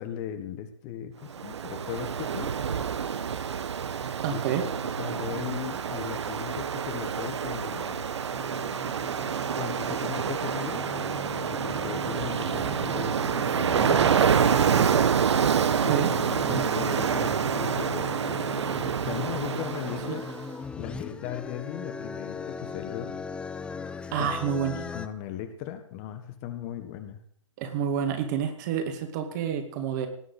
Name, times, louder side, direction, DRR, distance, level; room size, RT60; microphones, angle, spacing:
voice 1, 0.0-2.5 4.3-4.4 5.0-8.0 9.6-10.9 11.4-14.1 15.8-18.4 19.0-20.3 20.7-23.1 24.2-24.6 24.9-27.2, left 10 dB, 30° left, 9 dB, 1.5 m, -37 dB
Ocean, 1.3-20.4, right 7 dB, 60° right, 1.2 m, -27 dB
voice 2, 4.2-4.7 15.9-16.1 20.1-20.2 24.1-24.9 27.6-30.1, right 8 dB, 35° right, 6 dB, 2.4 m, -28 dB
sound 1, 8.3-25.1, left 5 dB, 5° left, 0.6 m, -40 dB
18.5 x 7.7 x 8.1 m, 0.65 s
figure-of-eight pair, 130°, 16 cm